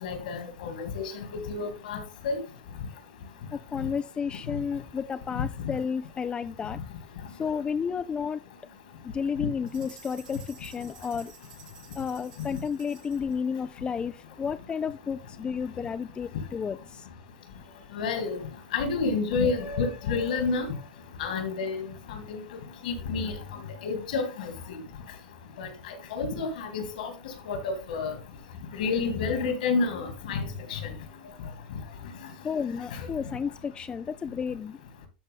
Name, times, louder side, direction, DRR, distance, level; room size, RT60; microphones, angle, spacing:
voice 1, 0.0-2.4 17.9-18.4 18.7-20.7 21.2-22.4 22.8-23.3 23.8-24.5 25.6-27.1 27.4-28.2 28.7-30.4 30.7-30.9 32.9-33.0, left 4 dB, 70° left, 2.7 m, -29 dB
voice 2, 3.5-6.8 7.3-8.4 9.0-11.3 11.9-17.1 32.4-34.8, left 6 dB, 20° left, 0.4 m, -32 dB
sound 1, 9.7-13.3, right 6 dB, 80° right, 5.7 m, -52 dB
12.0 x 4.6 x 3.8 m
hypercardioid pair, 100°, 5 cm